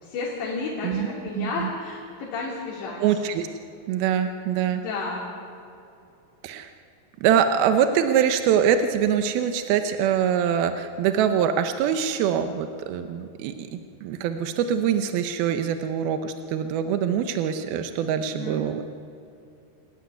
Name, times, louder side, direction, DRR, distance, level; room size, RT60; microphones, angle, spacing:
voice 1, 0.0-3.2 4.7-5.3 18.3-18.6, left 3 dB, 70° left, -4 dB, 5.3 m, -32 dB
voice 2, 1.4-1.7 3.0-3.5 3.9-4.8 6.4-6.7 7.2-18.8, right 8 dB, 75° right, 8 dB, 2.3 m, -24 dB
29.0 x 14.0 x 9.5 m, 2.7 s
omnidirectional pair, 5.3 m